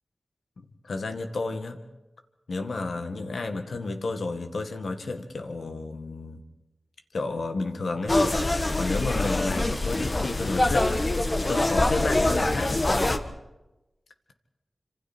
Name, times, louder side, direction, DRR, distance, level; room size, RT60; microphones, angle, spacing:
voice 1, 0.6-1.8 2.5-6.4 7.1-8.2 8.8-11.1 11.5-12.9, left 3 dB, 85° left, 6 dB, 1.9 m, -31 dB
sound 1, 8.1-13.2, left 2 dB, 45° left, 1.5 m, -24 dB
27.5 x 26.0 x 4.5 m, 1.0 s
cardioid pair, 45°, 0 cm